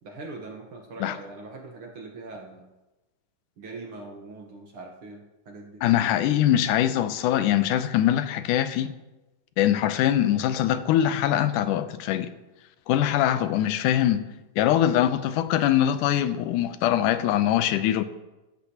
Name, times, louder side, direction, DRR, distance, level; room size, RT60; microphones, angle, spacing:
voice 1, 0.0-2.6 3.6-5.8, right 3 dB, 55° right, 1.7 m, -41 dB
voice 2, 5.8-8.9 9.6-12.3 12.9-14.2 14.6-18.0, left 11 dB, 90° left, 2.2 m, -23 dB
15.0 x 13.5 x 2.9 m
omnidirectional pair, 3.6 m